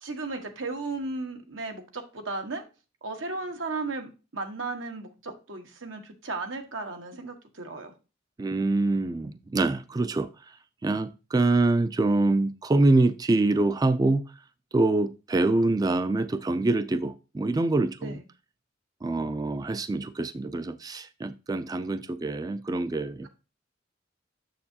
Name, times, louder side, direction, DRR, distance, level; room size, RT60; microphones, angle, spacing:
voice 1, 0.0-2.6 3.0-7.9 18.0-18.2, right 3 dB, 90° right, 1.4 m, -35 dB
voice 2, 8.4-10.3 10.8-14.2 14.7-18.2 19.0-23.3, right 2 dB, 20° right, 0.3 m, -25 dB
6.8 x 6.5 x 2.8 m
head